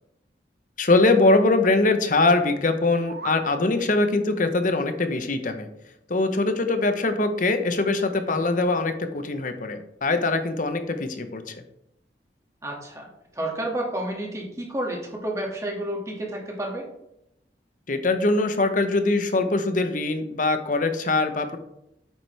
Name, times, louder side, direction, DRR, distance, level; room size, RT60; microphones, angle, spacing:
voice 1, 0.8-5.7 6.1-11.5 17.9-21.6, left 2 dB, 45° left, 8 dB, 0.9 m, -22 dB
sound 1, 2.8-3.5, right 3 dB, 60° right, 0.7 m, -39 dB
voice 2, 12.6-16.9, right 1 dB, 15° right, -2 dB, 2.1 m, -30 dB
9.2 x 7.1 x 3.4 m, 0.82 s
head